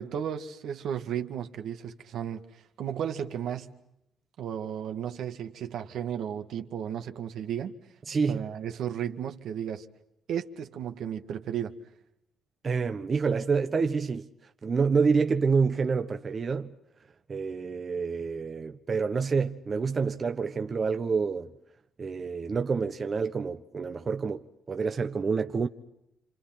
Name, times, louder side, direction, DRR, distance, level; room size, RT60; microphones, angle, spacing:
voice 1, 0.0-3.8 4.4-7.8 8.3-9.9 10.3-11.7, right 9 dB, 75° right, 2.1 m, -34 dB
voice 2, 8.1-8.4 12.6-14.3 14.6-16.7 17.3-21.5 22.0-25.7, right 5 dB, 40° right, 1.3 m, -28 dB
29.0 x 27.0 x 6.0 m
cardioid pair, 90°, 0 cm